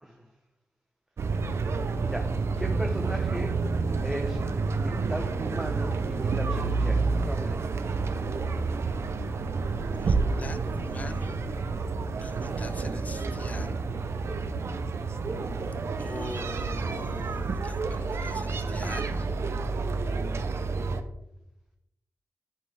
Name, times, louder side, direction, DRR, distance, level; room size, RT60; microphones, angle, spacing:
sound 1, 1.2-21.0, right 4 dB, 55° right, 0.6 m, -29 dB
voice 1, 2.6-3.5 4.0-4.4 4.7-7.6, right 1 dB, 10° right, 2 dB, 0.8 m, -36 dB
voice 2, 10.0-11.4 12.2-13.7 16.0-19.3, left 3 dB, 30° left, 11 dB, 0.5 m, -42 dB
11.0 x 5.5 x 3.4 m, 0.85 s
wide cardioid pair, 135°, 5 cm